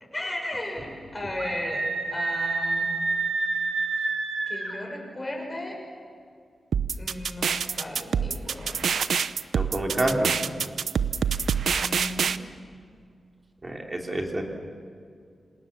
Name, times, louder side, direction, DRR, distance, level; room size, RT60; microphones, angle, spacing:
voice 1, 0.1-3.0 4.5-5.8 7.0-8.8 11.8-12.3, left 1 dB, 15° left, -1 dB, 6.6 m, -35 dB
Screaming, 1.4-4.7, right 3 dB, 55° right, 4.5 m, -28 dB
sound 1, 6.7-12.4, right 7 dB, 80° right, 0.7 m, -26 dB
voice 2, 9.5-10.4 13.6-14.4, right 1 dB, 20° right, 1 dB, 3.3 m, -27 dB
28.0 x 27.0 x 7.5 m, 2.2 s
wide cardioid pair, 175°, 0 cm